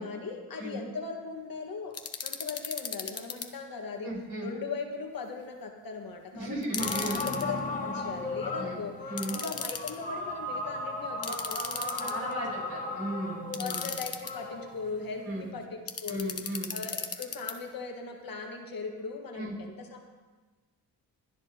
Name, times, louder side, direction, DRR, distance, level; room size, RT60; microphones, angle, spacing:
voice 1, 0.0-2.0 2.2-4.1 4.4-6.6 7.0-8.9 9.3-12.5 13.6-16.3 16.7-20.0, left 4 dB, 60° left, 3 dB, 1.8 m, -39 dB
sound 1, 1.9-3.5 6.6-7.4 9.2-9.9 11.2-12.3 13.5-14.3 15.9-17.5, left 6 dB, 40° left, 1.0 m, -36 dB
voice 2, 4.0-4.5 6.3-7.3 8.6-8.8 9.1-9.4 12.0-13.9 15.2-15.4 16.1-16.7 19.3-19.5, right 1 dB, 75° right, -3 dB, 4.7 m, -35 dB
sound 2, 6.8-15.5, left 2 dB, 20° left, 1.6 m, -36 dB
22.0 x 9.9 x 3.0 m, 1.3 s
cardioid pair, 85°, 39 cm